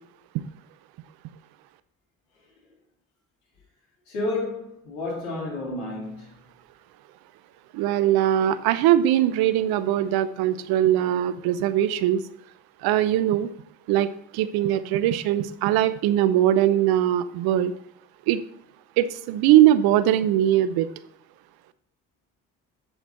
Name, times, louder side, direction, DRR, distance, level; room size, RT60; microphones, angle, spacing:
voice 1, 4.1-6.5, left 2 dB, 85° left, 2.9 m, -31 dB
voice 2, 7.7-12.2 12.8-13.5 13.9-14.1 14.3-17.7 18.3-18.4 19.0-20.9, right 12 dB, 70° right, 0.7 m, -21 dB
8.0 x 7.9 x 2.9 m
hypercardioid pair, 45°, 38 cm